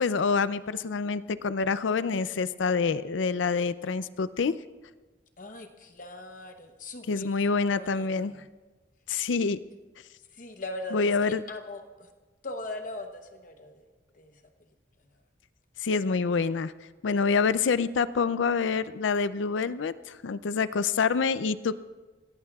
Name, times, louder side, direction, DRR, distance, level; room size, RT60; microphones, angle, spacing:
voice 1, 0.0-4.6 7.1-8.4 9.1-9.6 10.9-11.4 15.8-16.7 17.0-21.7, left 5 dB, 90° left, 14 dB, 0.5 m, -26 dB
voice 2, 5.4-8.4 10.3-12.1 12.4-13.9 14.1-14.4, left 2 dB, 45° left, 5 dB, 0.9 m, -40 dB
29.0 x 17.0 x 2.4 m, 1.3 s
head